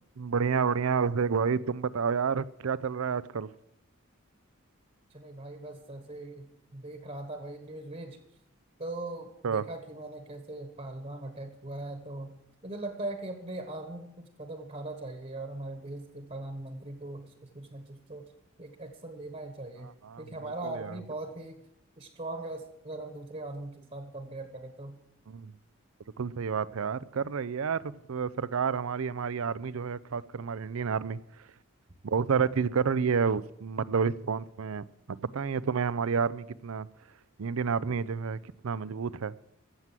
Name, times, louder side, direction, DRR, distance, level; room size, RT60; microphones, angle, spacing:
voice 1, 0.2-3.5 9.4-9.7 20.0-20.3 20.6-21.0 25.3-25.5 26.2-31.2 32.0-34.8 35.2-36.9 37.4-39.3, right 6 dB, 75° right, 0.5 m, -29 dB
voice 2, 5.1-8.2 8.8-18.3 18.6-19.9 20.2-21.6 22.0-25.0, right 2 dB, 35° right, 1.3 m, -40 dB
14.0 x 7.6 x 7.5 m
head